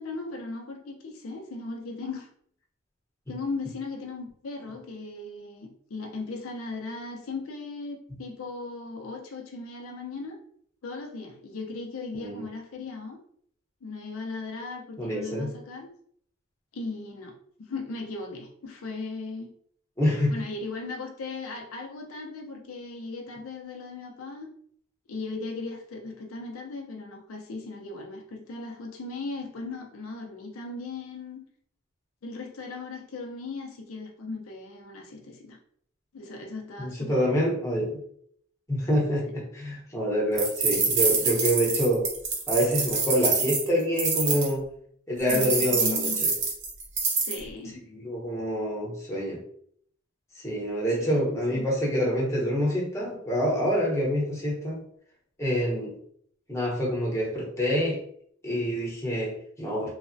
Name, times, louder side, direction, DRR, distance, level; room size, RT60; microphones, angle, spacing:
voice 1, 0.0-2.3 3.3-10.4 10.8-13.2 13.8-15.9 16.7-17.3 17.6-19.5 20.3-24.5 25.1-31.4 32.2-35.6 36.1-37.3 39.3-39.4 45.3-46.2 47.2-47.7 51.0-51.2 51.5-51.7, left 3 dB, 85° left, 2 dB, 0.5 m, -37 dB
voice 2, 15.0-15.5 20.0-20.4 36.8-38.0 38.7-42.1 42.5-44.7 45.1-46.3 47.9-49.4 50.4-54.8 55.4-55.9 56.5-58.0 58.4-59.9, equal, 15° left, -4 dB, 0.8 m, -26 dB
sound 1, 40.4-44.5 45.3-47.4, right 4 dB, 55° right, 0.7 m, -26 dB
3.1 x 2.0 x 2.6 m, 0.64 s
head